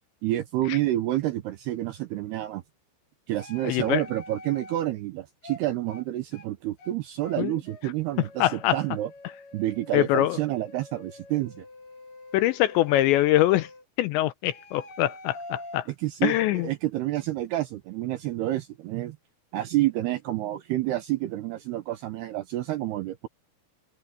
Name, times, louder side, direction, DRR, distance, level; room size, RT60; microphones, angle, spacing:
voice 1, 0.2-2.6 3.3-9.1 9.5-11.7 16.0-19.2 19.5-23.3, right 15 dB, 80° right, 2.4 m, -29 dB
sound 1, 3.4-4.8 5.4-5.6 5.9-6.1 6.3-6.5 6.8-6.9 7.2-7.4 7.7-7.8 8.1-13.8 14.5-15.8, left 2 dB, 55° left, 7.5 m, -45 dB
voice 2, 3.6-4.0 7.4-7.5 8.4-8.8 9.9-10.4 12.3-13.7 14.0-15.9 16.2-16.7, left 15 dB, 80° left, 2.7 m, -23 dB
omnidirectional pair, 5.7 m